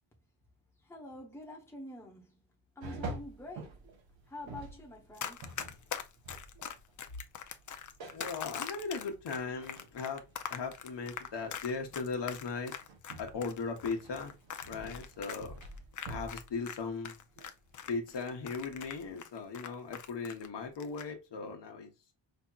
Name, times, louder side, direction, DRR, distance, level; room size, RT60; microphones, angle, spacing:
voice 1, 0.8-2.4 2.8-3.8 4.3-5.5, left 1 dB, 5° left, 0.9 m, -47 dB
sound 1, 2.8-19.1, right 2 dB, 90° right, 1.2 m, -49 dB
Run, 5.2-16.8 17.0-20.5 20.8-21.1, left 8 dB, 45° left, 0.5 m, -42 dB
voice 2, 8.1-10.2 10.5-12.7 13.2-14.3 14.6-15.5 16.1-17.2 17.9-21.9, left 4 dB, 65° left, 1.0 m, -38 dB
5.0 x 2.8 x 2.3 m
wide cardioid pair, 175°, 45 cm